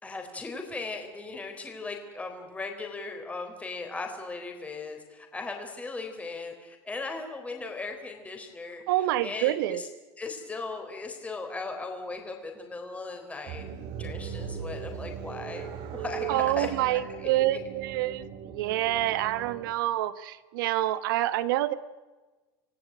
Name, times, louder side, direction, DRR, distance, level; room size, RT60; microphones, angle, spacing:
voice 1, 0.0-8.8 9.2-9.9 10.2-13.7 14.0-17.3, left 3 dB, 10° left, 4 dB, 3.8 m, -38 dB
voice 2, 8.9-9.8 16.3-21.7, right 14 dB, 90° right, 14 dB, 1.4 m, -27 dB
sound 1, 13.5-19.7, right 7 dB, 60° right, 3.8 m, -38 dB
27.0 x 16.5 x 9.1 m, 1.3 s
supercardioid pair, 130°, 11 cm